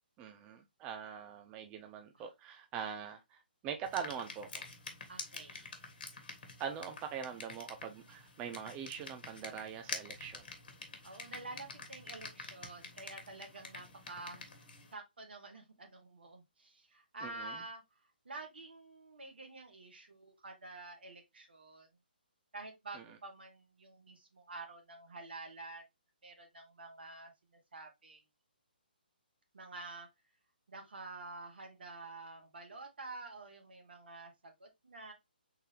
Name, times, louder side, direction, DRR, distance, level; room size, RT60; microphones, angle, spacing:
voice 1, 0.2-4.6 6.6-10.5 17.2-17.5, right 7 dB, 20° right, 0.4 m, -43 dB
sound 1, 3.8-14.9, left 4 dB, 65° left, 1.3 m, -48 dB
voice 2, 5.1-5.8 11.0-14.7 14.9-17.8 18.2-21.9 22.5-25.8 26.2-27.3 27.7-28.2 29.5-30.1 30.7-35.1, right 3 dB, 80° right, 1.4 m, -49 dB
3.7 x 2.7 x 3.3 m
hypercardioid pair, 145°, 5 cm